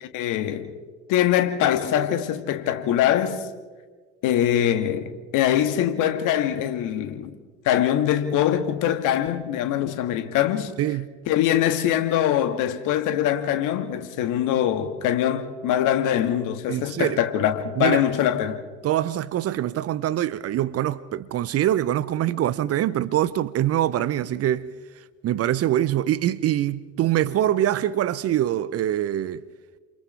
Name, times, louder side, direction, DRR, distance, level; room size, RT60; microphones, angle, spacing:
voice 1, 0.1-0.7 1.1-3.5 4.2-7.3 7.7-10.7 11.3-18.6, left 11 dB, 55° left, 2.0 m, -23 dB
voice 2, 16.7-17.2 17.8-18.0 18.8-24.7 25.2-29.4, right 12 dB, 40° right, 0.8 m, -24 dB
29.0 x 28.0 x 3.5 m
figure-of-eight pair, 65°, 38 cm